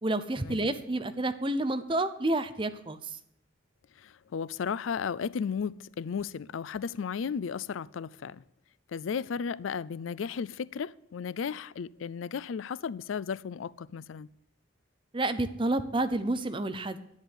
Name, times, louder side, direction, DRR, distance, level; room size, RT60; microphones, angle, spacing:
voice 1, 0.0-3.0 15.1-17.0, right 2 dB, 25° right, 0.8 m, -29 dB
voice 2, 4.0-8.4 8.9-14.3, left 6 dB, 85° left, 0.4 m, -34 dB
10.5 x 8.3 x 9.0 m
head